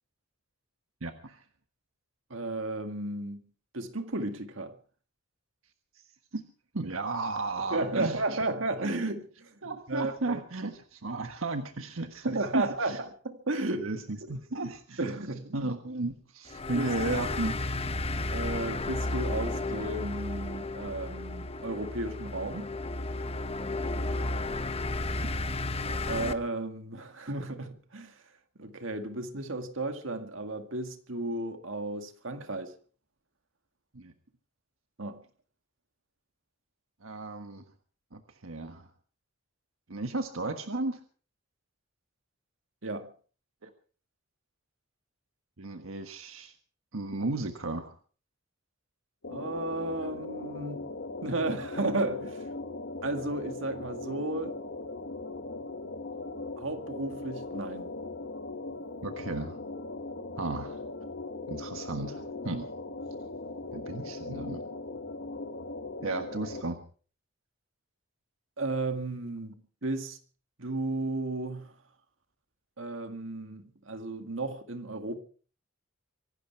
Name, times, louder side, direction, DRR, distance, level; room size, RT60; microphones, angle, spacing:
voice 1, 1.0-1.4 6.3-6.4 6.7-8.2 9.6-13.0 13.8-15.0 15.5-17.6 24.0-24.4 33.9-34.1 37.0-37.6 38.1-38.9 39.9-41.0 43.6-43.7 45.6-46.5 46.9-47.9 59.0-59.6 60.4-60.8 61.5-62.7 63.7-64.6 66.0-66.8, right 2 dB, 90° right, 1.5 m, -34 dB
voice 2, 2.3-3.4 3.7-4.8 7.7-10.4 12.2-13.9 15.0-15.7 16.7-16.9 18.3-22.7 25.8-28.2 28.6-32.7 35.0-35.2 42.8-43.1 49.3-50.9 51.2-52.5 53.0-54.6 56.6-58.0 68.6-69.5 69.8-70.2 70.6-71.7 72.8-75.2, right 2 dB, 70° right, 2.0 m, -34 dB
sound 1, 16.5-26.3, left 2 dB, 30° left, 0.9 m, -33 dB
sound 2, 49.2-66.6, left 2 dB, 60° left, 1.5 m, -39 dB
24.5 x 12.0 x 4.6 m
head